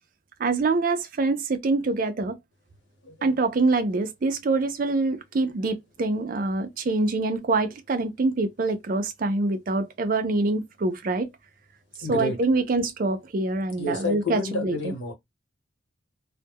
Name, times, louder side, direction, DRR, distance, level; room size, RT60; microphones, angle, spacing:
voice 1, 0.4-2.4 3.2-11.3 12.1-14.7, right 3 dB, 45° right, 0.4 m, -25 dB
voice 2, 3.0-3.3 12.0-12.4 13.8-15.1, left 2 dB, 70° left, 1.1 m, -30 dB
2.1 x 2.1 x 3.4 m
head